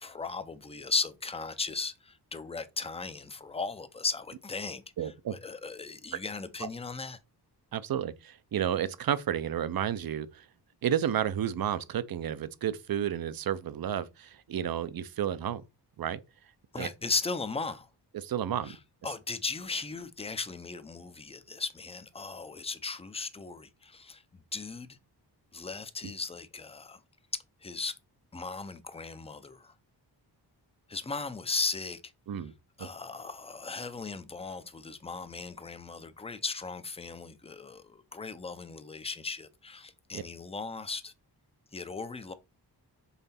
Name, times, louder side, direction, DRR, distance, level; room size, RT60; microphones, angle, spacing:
voice 1, 0.0-7.2 16.7-17.9 18.6-18.8 19.0-24.2 24.5-24.9 25.5-27.0 27.6-27.9 28.3-29.7 30.9-32.0 32.8-41.1 41.7-42.3, left 4 dB, 15° left, 0.5 m, -37 dB
voice 2, 5.0-5.4 6.6-6.7 7.7-10.4 10.8-15.6 16.0-16.2 16.8-16.9 18.1-18.8 32.3-32.5 32.8-32.9 40.1-40.2, right 9 dB, 60° right, 0.6 m, -31 dB
5.7 x 4.0 x 4.2 m
wide cardioid pair, 155°, 41 cm